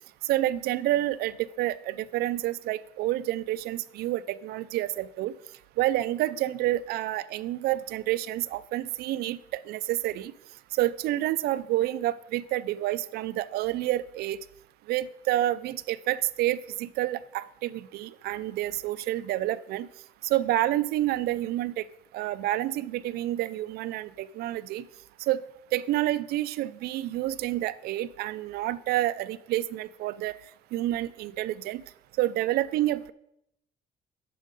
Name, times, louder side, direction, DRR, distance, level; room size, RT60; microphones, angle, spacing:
voice 1, 0.3-5.3 5.8-9.4 9.7-10.3 10.7-14.4 14.9-19.9 20.2-21.8 22.1-24.8 25.3-25.4 25.7-30.3 30.7-31.8 32.2-33.1, right 14 dB, 75° right, 17 dB, 0.4 m, -28 dB
9.3 x 6.3 x 5.2 m, 0.81 s
cardioid pair, 165°, 16 cm